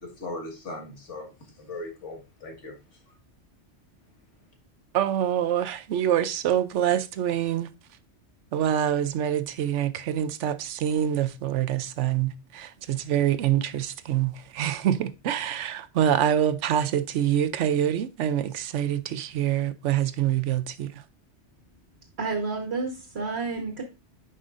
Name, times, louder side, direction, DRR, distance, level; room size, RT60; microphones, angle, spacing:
voice 1, 0.0-3.2, left 2 dB, 90° left, 2.1 m, -39 dB
voice 2, 4.9-7.7 8.5-21.0, right 10 dB, 85° right, 1.0 m, -25 dB
voice 3, 22.2-23.8, right 4 dB, 60° right, 1.5 m, -30 dB
9.9 x 5.4 x 2.5 m
omnidirectional pair, 1.2 m